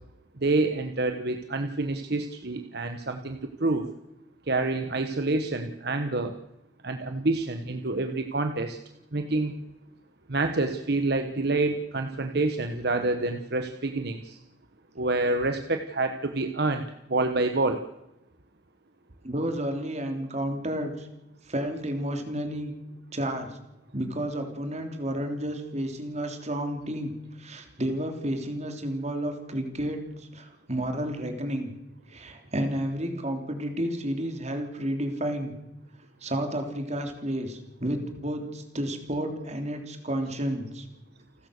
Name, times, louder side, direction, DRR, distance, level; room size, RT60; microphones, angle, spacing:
voice 1, 0.4-3.8 4.5-6.3 6.8-8.8 9.1-9.5 10.3-14.4 15.0-16.8 17.1-17.8, right 2 dB, 65° right, 6 dB, 1.3 m, -27 dB
voice 2, 19.2-21.1 21.4-22.7 23.1-23.5 23.9-27.1 27.4-31.7 32.1-35.5 36.2-40.9, right 1 dB, 40° right, 5 dB, 3.6 m, -31 dB
29.5 x 13.5 x 6.7 m, 0.91 s
head